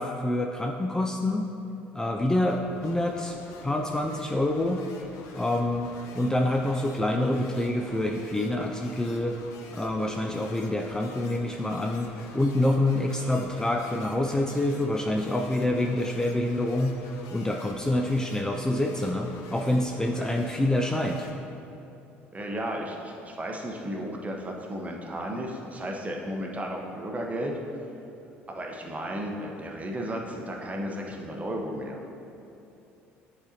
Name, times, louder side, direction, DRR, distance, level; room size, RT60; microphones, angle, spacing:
voice 1, 0.0-1.5 1.9-3.4 3.6-4.8 5.3-9.4 9.7-17.0 17.3-21.3, left 1 dB, 10° left, 2 dB, 0.4 m, -27 dB
sound 1, 2.3-21.3, left 4 dB, 65° left, 0.6 m, -48 dB
voice 2, 22.3-27.5 28.5-32.0, equal, 25° right, 0 dB, 1.0 m, -34 dB
10.0 x 4.2 x 2.9 m, 2.8 s
hypercardioid pair, 60°, 6 cm